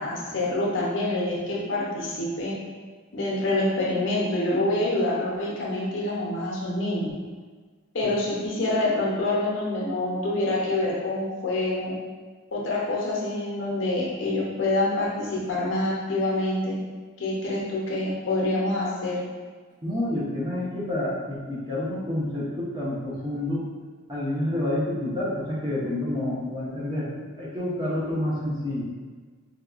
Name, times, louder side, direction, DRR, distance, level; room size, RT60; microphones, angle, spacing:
voice 1, 0.0-2.5 3.1-7.1 7.9-11.9 12.5-16.7 17.2-19.2, left 2 dB, 60° left, -5 dB, 0.7 m, -26 dB
voice 2, 19.8-23.6 24.1-28.8, left 1 dB, 20° right, -7 dB, 0.7 m, -28 dB
4.2 x 2.2 x 2.4 m, 1.5 s
head